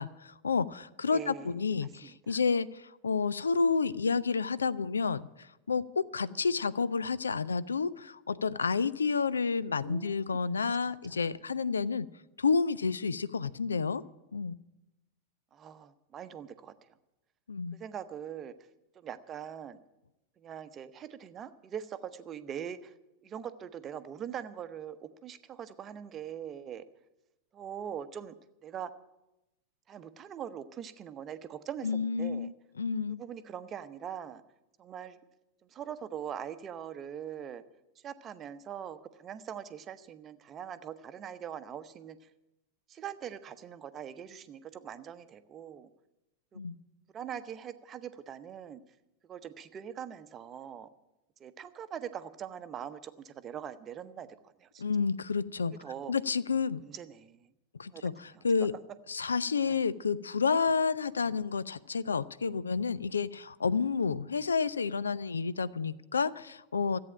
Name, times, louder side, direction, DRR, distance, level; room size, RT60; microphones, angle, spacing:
voice 1, 0.0-12.1 12.4-14.0 14.3-14.6 17.5-17.8 31.8-33.2 46.6-46.8 54.8-55.7 56.1-56.8 57.7-58.7 59.1-67.0, left 5 dB, 75° left, 18 dB, 0.4 m, -30 dB
voice 2, 1.1-1.6 2.0-2.4 6.2-6.5 9.8-10.4 10.8-11.0 15.5-16.9 17.7-18.5 18.9-19.8 20.4-22.9 23.2-26.8 27.5-28.4 28.6-28.9 29.9-32.5 33.1-34.4 34.8-35.2 35.6-37.6 38.0-42.3 42.9-45.9 46.5-46.6 47.1-48.8 49.2-50.9 51.4-54.8 55.8-56.1 56.8-57.5 57.9-58.0 58.3-58.7 59.6-59.8 61.2-61.4, right 9 dB, 25° right, 12 dB, 0.8 m, -42 dB
14.0 x 8.6 x 8.8 m, 0.94 s
figure-of-eight pair, 90°, 0 cm